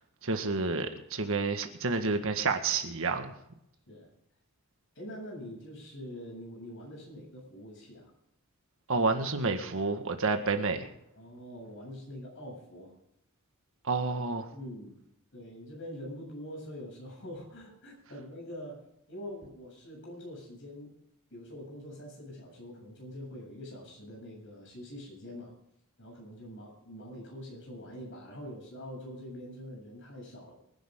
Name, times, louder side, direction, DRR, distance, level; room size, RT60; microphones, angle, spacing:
voice 1, 0.2-3.3 8.9-10.9 13.8-14.5, right 3 dB, 65° right, 1.7 m, -29 dB
voice 2, 4.9-8.1 11.2-12.9 14.5-14.9 15.3-18.8 19.1-20.9 21.3-25.5 26.0-30.5, equal, 60° left, 7.7 m, -44 dB
24.5 x 11.0 x 3.8 m
head